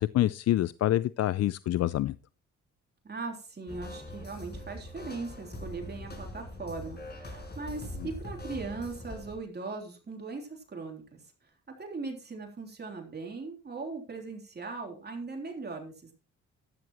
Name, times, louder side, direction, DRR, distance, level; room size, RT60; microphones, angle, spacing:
voice 1, 0.0-2.1, left 13 dB, 55° left, 0.5 m, -26 dB
voice 2, 3.0-11.5 11.8-16.1, right 3 dB, 35° right, 3.4 m, -39 dB
sound 1, 3.7-9.4, left 1 dB, 35° left, 5.6 m, -42 dB
13.0 x 12.5 x 3.0 m
cardioid pair, 90°, 30 cm